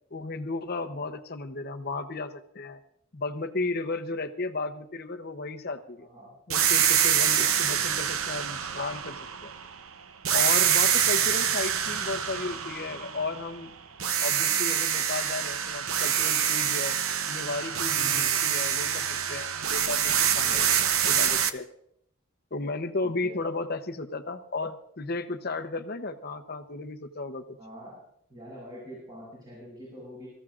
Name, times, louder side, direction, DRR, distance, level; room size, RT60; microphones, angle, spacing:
voice 1, 0.1-2.8 3.1-6.1 6.5-9.5 10.3-13.7 14.2-17.0 17.3-20.7 21.0-21.7 22.5-27.6, left 3 dB, 50° left, 8 dB, 0.8 m, -34 dB
voice 2, 6.0-6.3 7.3-7.5 10.7-11.1 17.9-18.3 20.1-20.7 23.0-23.4 27.6-28.0 28.3-30.3, equal, 20° right, -7 dB, 7.3 m, -45 dB
sound 1, 6.5-9.8 10.2-13.6 14.0-21.5, right 9 dB, 90° right, 0.8 m, -26 dB
24.5 x 14.5 x 2.5 m, 0.72 s
head